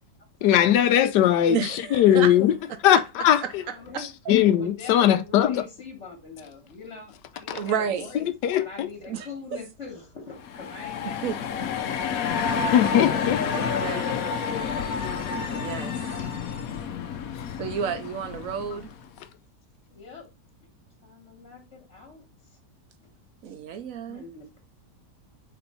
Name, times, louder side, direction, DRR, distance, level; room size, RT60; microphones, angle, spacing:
voice 1, 0.4-2.5 2.8-3.6 4.0-5.6 7.5-7.6 8.4-8.9 12.7-14.0, left 11 dB, 85° left, 1.3 m, -20 dB
voice 2, 1.5-2.3 2.7-3.0 3.4-3.5 3.9-4.3 7.5-8.1 9.0-9.6 11.0-11.4 13.5-14.4 15.4-15.9 17.6-18.9 23.4-24.3, right 7 dB, 60° right, 1.0 m, -31 dB
voice 3, 3.7-4.1 4.6-8.2 8.5-11.8 15.3-16.4 19.9-20.3 21.0-22.2 24.1-24.6, left 4 dB, 45° left, 1.7 m, -43 dB
sound 1, 10.4-19.1, left 6 dB, 65° left, 1.1 m, -29 dB
4.4 x 4.2 x 5.5 m
omnidirectional pair, 1.8 m